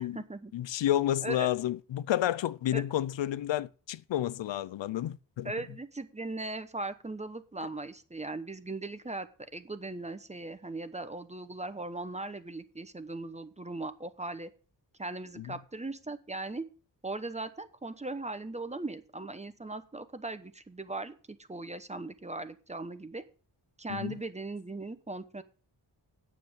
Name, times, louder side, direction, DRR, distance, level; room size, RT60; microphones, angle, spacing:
voice 1, 0.0-0.5 1.2-1.5 2.7-2.8 5.4-14.5 15.0-16.7 17.0-23.2 23.8-25.4, right 2 dB, 15° right, 0.9 m, -39 dB
voice 2, 0.5-5.5 15.4-15.5 23.9-24.2, left 12 dB, 90° left, 0.6 m, -30 dB
9.4 x 7.4 x 6.3 m
wide cardioid pair, 140°, 43 cm